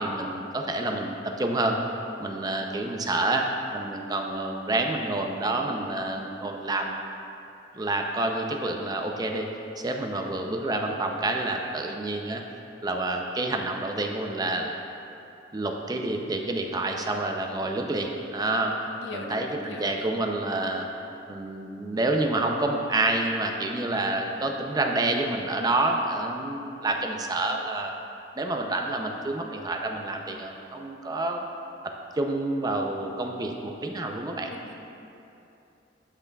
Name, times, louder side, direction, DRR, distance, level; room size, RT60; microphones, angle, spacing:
voice 1, 0.0-1.8 2.2-7.0 7.7-9.5 9.8-12.4 12.8-14.7 15.5-18.8 19.1-20.9 21.3-27.9 28.4-31.5 31.8-34.5, right 2 dB, 20° right, 3 dB, 0.4 m, -28 dB
voice 2, 2.5-2.9 18.9-20.0 34.5-34.7, left 3 dB, 70° left, 3 dB, 0.6 m, -41 dB
12.0 x 5.8 x 2.3 m, 2.8 s
head